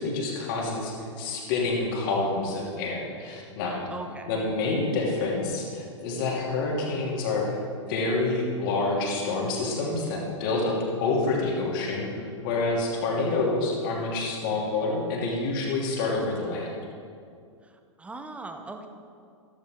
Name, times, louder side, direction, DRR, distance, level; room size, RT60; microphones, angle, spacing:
voice 1, 0.0-3.8 4.3-7.6 7.9-16.7, left 3 dB, 45° left, -2 dB, 2.8 m, -28 dB
voice 2, 3.9-4.3 17.6-18.9, right 2 dB, 5° right, 6 dB, 0.9 m, -40 dB
14.0 x 13.5 x 3.7 m, 2.3 s
figure-of-eight pair, 100°, 16 cm